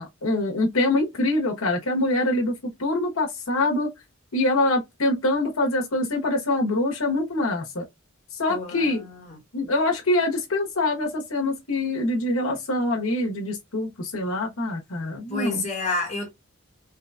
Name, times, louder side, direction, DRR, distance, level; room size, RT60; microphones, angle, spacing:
voice 1, 0.0-2.5 2.8-3.9 4.3-7.8 8.4-9.0 9.5-15.7, left 2 dB, 85° left, 1.1 m, -24 dB
voice 2, 8.5-9.3 15.3-16.3, left 2 dB, 35° left, 1.2 m, -29 dB
3.8 x 3.0 x 2.3 m
head